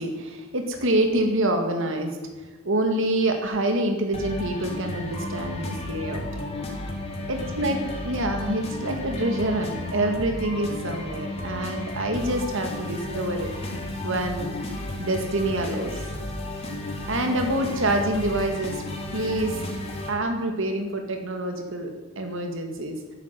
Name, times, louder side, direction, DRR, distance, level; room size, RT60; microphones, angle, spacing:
voice 1, 0.0-2.2 2.6-6.2 7.3-13.5 14.0-14.5 15.0-15.9 17.1-18.8 19.1-19.6 20.1-23.0, right 1 dB, 65° right, 4 dB, 2.2 m, -26 dB
sound 1, 4.1-20.1, left 1 dB, 30° left, 3.3 m, -33 dB
12.5 x 9.3 x 9.1 m, 1.2 s
head